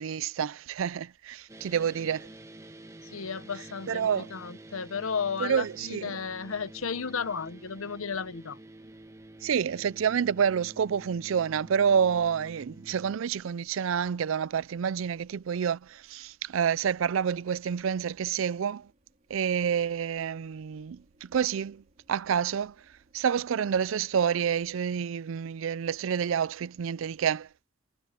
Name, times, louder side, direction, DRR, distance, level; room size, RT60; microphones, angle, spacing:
voice 1, 0.0-2.3 3.9-4.3 5.4-6.2 9.4-18.9 19.3-21.8 22.1-22.7 23.1-27.5, right 7 dB, 70° right, 0.4 m, -28 dB
sound 1, 1.5-13.2, right 1 dB, 15° right, 1.8 m, -49 dB
voice 2, 3.0-8.6, left 6 dB, 90° left, 1.0 m, -34 dB
sound 2, 6.2-24.8, right 1 dB, 40° right, 4.7 m, -68 dB
head